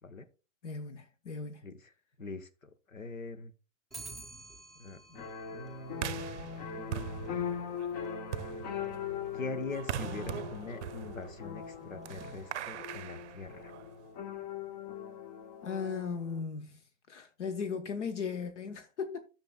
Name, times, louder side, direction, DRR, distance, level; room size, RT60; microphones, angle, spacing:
voice 1, 0.6-1.6 15.6-19.2, left 5 dB, 65° left, 1.0 m, -37 dB
voice 2, 2.2-3.5 4.7-7.2 9.3-13.7, left 3 dB, 90° left, 1.0 m, -43 dB
Clock, 3.9-13.3, right 2 dB, ahead, 0.5 m, -54 dB
sound 1, 5.1-16.4, left 7 dB, 35° left, 0.9 m, -41 dB
sound 2, 5.9-14.0, right 10 dB, 60° right, 0.6 m, -42 dB
14.5 x 5.9 x 2.3 m
figure-of-eight pair, 115°, 39 cm